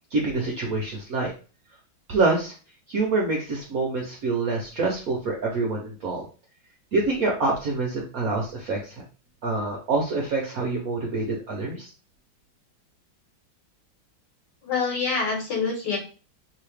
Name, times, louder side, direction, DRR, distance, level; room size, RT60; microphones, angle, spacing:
voice 1, 0.1-1.3 2.1-2.5 2.9-6.2 6.9-9.0 9.4-11.9, right 3 dB, 65° right, -1 dB, 0.8 m, -26 dB
voice 2, 14.6-16.0, left 4 dB, 60° left, -2 dB, 1.7 m, -26 dB
3.1 x 2.9 x 3.3 m, 0.36 s
omnidirectional pair, 2.2 m